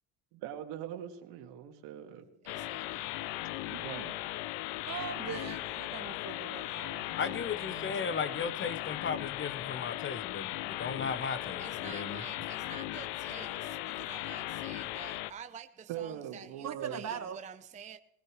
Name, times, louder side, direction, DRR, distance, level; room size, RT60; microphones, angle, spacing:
voice 1, 0.3-2.2 3.7-4.2 13.4-13.8 15.9-17.0, right 10 dB, 80° right, 2.1 m, -42 dB
voice 2, 2.4-3.1 11.6-18.0, right 7 dB, 20° right, 0.5 m, -49 dB
sound 1, 2.5-15.3, left 17 dB, 85° left, 0.7 m, -38 dB
voice 3, 4.8-8.7 16.6-17.4, right 8 dB, 40° right, 1.8 m, -42 dB
voice 4, 7.1-12.2, left 5 dB, 30° left, 0.8 m, -36 dB
20.5 x 16.0 x 3.1 m
cardioid pair, 120°, 41 cm